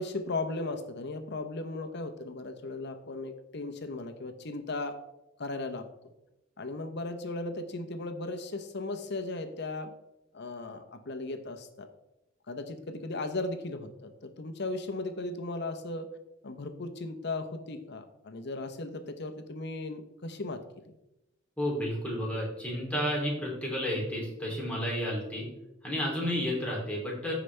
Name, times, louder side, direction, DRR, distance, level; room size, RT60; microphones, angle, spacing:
voice 1, 0.0-5.0 5.4-5.9 6.6-9.9 10.3-11.9 12.5-16.1 16.4-20.6, left 2 dB, 60° left, 8 dB, 0.9 m, -36 dB
voice 2, 21.6-25.5 25.8-27.3, equal, 5° left, -4 dB, 3.0 m, -31 dB
15.0 x 5.0 x 3.3 m, 0.91 s
head